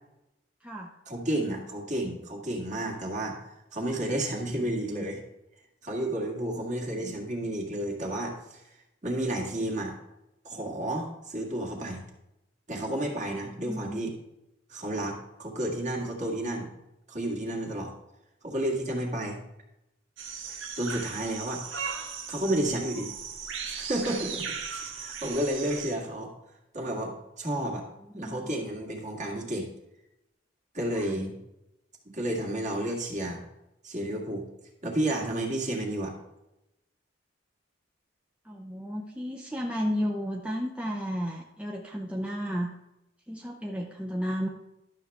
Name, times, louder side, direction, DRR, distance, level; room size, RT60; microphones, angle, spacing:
voice 1, 1.1-3.4 3.7-5.2 5.8-8.3 9.0-9.9 10.5-12.0 12.7-14.1 14.7-16.7 17.1-17.9 18.4-19.4 20.8-21.6 22.3-23.1 23.7-26.3 26.7-27.8 28.1-29.7 30.7-31.3 32.1-33.4 33.8-34.4 34.8-36.1, right 1 dB, 40° right, 0 dB, 1.9 m, -31 dB
voice 2, 4.6-5.1 6.5-6.6 7.0-7.1 13.3-13.4 13.6-14.0 28.1-28.5 30.9-31.2 38.5-42.7 43.3-44.5, equal, 5° right, 0 dB, 0.6 m, -33 dB
sound 1, 20.2-25.9, right 6 dB, 90° right, 1.2 m, -37 dB
11.5 x 6.6 x 3.5 m, 0.90 s
head